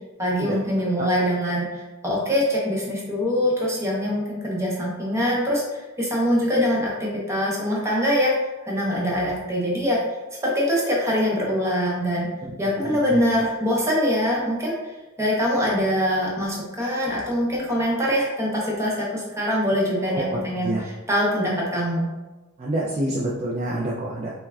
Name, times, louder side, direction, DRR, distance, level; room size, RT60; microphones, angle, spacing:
voice 1, 0.2-8.3 8.7-10.0 10.4-12.3 12.6-22.1, equal, 15° right, -4 dB, 0.8 m, -23 dB
voice 2, 20.1-20.8 22.6-24.3, right 1 dB, 30° right, -5 dB, 0.4 m, -27 dB
5.6 x 2.2 x 2.3 m, 1.1 s
head